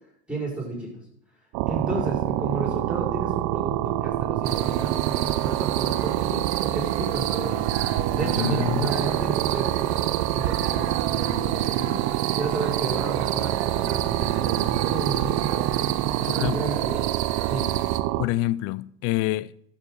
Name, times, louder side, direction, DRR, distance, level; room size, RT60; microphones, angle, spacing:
voice 1, 0.3-0.9 1.7-17.7, right 2 dB, 5° right, 5.3 m, -33 dB
sound 1, 1.5-18.2, right 14 dB, 55° right, 0.7 m, -26 dB
sound 2, 4.4-18.0, right 11 dB, 75° right, 1.0 m, -32 dB
voice 2, 8.1-8.9 16.2-16.6 18.2-19.5, left 17 dB, 45° left, 0.5 m, -27 dB
13.5 x 7.2 x 4.8 m
hypercardioid pair, 95°, 33 cm